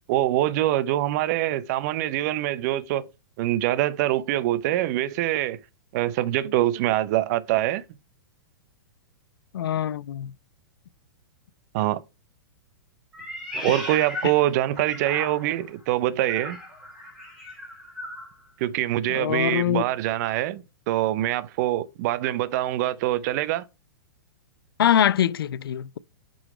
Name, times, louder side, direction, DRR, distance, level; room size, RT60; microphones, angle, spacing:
voice 1, 0.1-3.1 3.4-5.6 5.9-7.8 11.7-12.0 13.6-16.6 18.6-23.6, right 14 dB, 50° right, 0.6 m, -24 dB
voice 2, 9.5-10.3 19.1-19.8 24.8-26.0, left 10 dB, 80° left, 0.4 m, -23 dB
Meow, 13.1-15.7 16.2-18.3, left 1 dB, 5° right, 3.1 m, -37 dB
7.9 x 3.9 x 4.9 m
hypercardioid pair, 125°, 12 cm